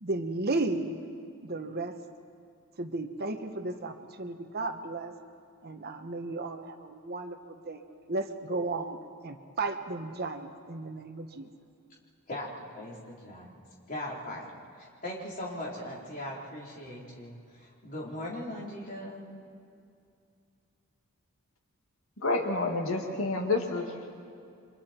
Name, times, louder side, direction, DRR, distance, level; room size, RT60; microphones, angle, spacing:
voice 1, 0.0-1.0 1.4-1.9 2.8-5.1 5.6-7.4 7.6-7.8 8.1-9.0 9.2-11.5, right 2 dB, 45° right, 6 dB, 1.1 m, -34 dB
voice 2, 12.7-13.5 13.9-14.5 14.8-19.3, left 1 dB, 40° left, -4 dB, 3.9 m, -39 dB
voice 3, 22.2-24.1, left 3 dB, 65° left, 2 dB, 2.2 m, -29 dB
30.0 x 25.0 x 4.4 m, 2.5 s
head